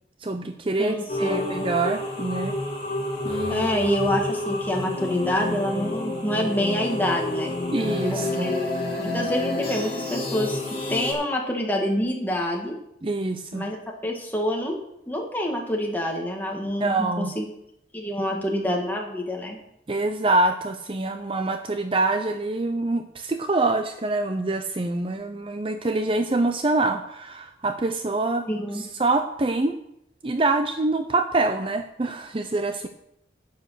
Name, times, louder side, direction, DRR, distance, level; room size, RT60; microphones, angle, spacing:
voice 1, 0.2-2.6 3.2-3.7 7.7-8.5 13.0-13.7 16.8-17.3 19.9-28.5 28.7-29.8 30.2-32.9, right 2 dB, 30° right, 7 dB, 0.5 m, -25 dB
voice 2, 0.8-1.4 3.5-7.5 8.1-8.7 9.0-12.8 13.5-13.8 14.0-14.8 15.1-17.5 17.9-19.6 28.5-28.8, equal, 10° left, 0 dB, 2.0 m, -27 dB
sound 1, 1.1-11.1, left 2 dB, 35° left, 3.7 m, -29 dB
10.0 x 8.0 x 6.4 m, 0.80 s
head